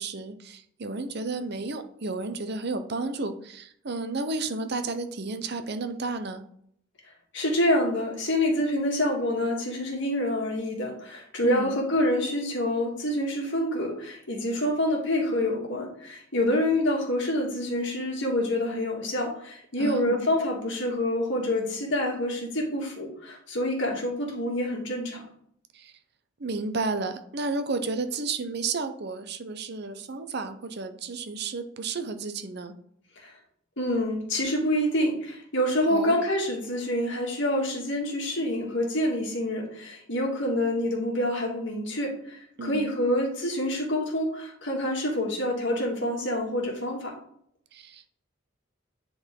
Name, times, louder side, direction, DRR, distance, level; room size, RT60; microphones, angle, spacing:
voice 1, 0.0-6.4 11.4-11.8 19.8-20.3 25.7-25.9 26.4-32.7 35.9-36.2 42.6-42.9 47.7-48.1, right 3 dB, 55° right, 9 dB, 0.7 m, -32 dB
voice 2, 7.3-25.2 33.8-47.1, left 1 dB, 60° left, 0 dB, 2.1 m, -27 dB
9.9 x 4.0 x 3.7 m, 0.67 s
head